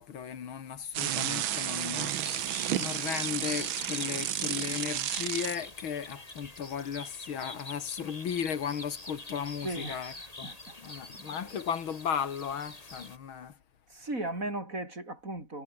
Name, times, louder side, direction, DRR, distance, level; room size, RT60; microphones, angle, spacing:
voice 1, 0.0-10.1 10.4-10.5 10.8-13.6, left 7 dB, 80° left, 2.6 m, -36 dB
sound 1, 0.9-5.6, right 11 dB, 80° right, 1.8 m, -32 dB
sound 2, 2.1-13.2, left 2 dB, 20° left, 2.8 m, -45 dB
voice 2, 9.6-11.6 13.9-15.6, right 2 dB, 40° right, 7.0 m, -38 dB
omnidirectional pair, 2.2 m